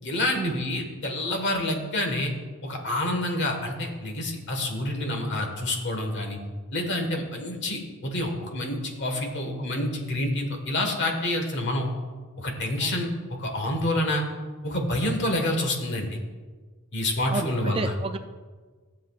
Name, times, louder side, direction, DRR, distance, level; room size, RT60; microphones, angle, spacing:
voice 1, 0.0-2.3 2.6-6.4 6.7-11.9 12.4-13.1 13.4-14.2 14.6-16.2 16.9-17.9, left 1 dB, 55° left, 3 dB, 1.6 m, -28 dB
voice 2, 17.3-18.2, right 3 dB, 25° right, 8 dB, 0.4 m, -30 dB
14.5 x 7.6 x 2.4 m, 1.4 s
head